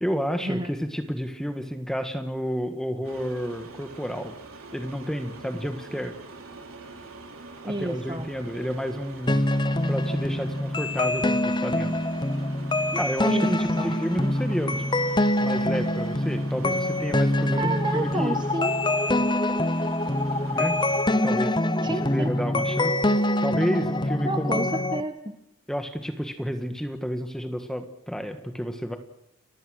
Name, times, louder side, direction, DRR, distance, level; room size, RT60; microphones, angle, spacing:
voice 1, 0.0-4.3 4.7-6.1 7.6-9.5 9.9-12.0 12.9-14.9 15.4-17.7 17.9-18.4 20.5-20.8 21.2-21.6 21.8-23.0 23.4-24.7 25.7-29.0, equal, ahead, 7 dB, 1.6 m, -30 dB
sound 1, 3.0-21.0, right 2 dB, 80° right, 3.8 m, -44 dB
voice 2, 7.6-8.3 13.2-14.0 17.6-18.8 21.8-22.3 24.2-25.3, right 1 dB, 20° right, 8 dB, 1.3 m, -30 dB
sound 2, 9.3-25.0, left 1 dB, 20° left, 0.8 m, -25 dB
30.0 x 15.0 x 6.5 m, 0.81 s
head